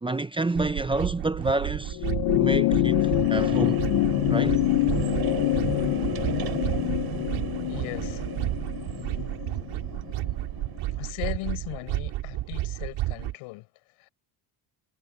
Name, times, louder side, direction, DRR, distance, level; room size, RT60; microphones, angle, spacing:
voice 1, 0.0-2.0 2.3-3.8 4.3-4.6, right 2 dB, 10° right, 0.7 m, -28 dB
sound 1, 0.5-13.3, right 16 dB, 80° right, 5.2 m, -32 dB
sound 2, 1.2-11.0, right 9 dB, 50° right, 6.8 m, -38 dB
sound 3, 1.9-10.6 11.8-11.9, left 21 dB, 70° left, 0.7 m, -26 dB
voice 2, 7.7-8.3 8.8-9.3 10.9-13.7 14.0-14.1, left 22 dB, 90° left, 6.1 m, -38 dB
cardioid pair, 110°, 47 cm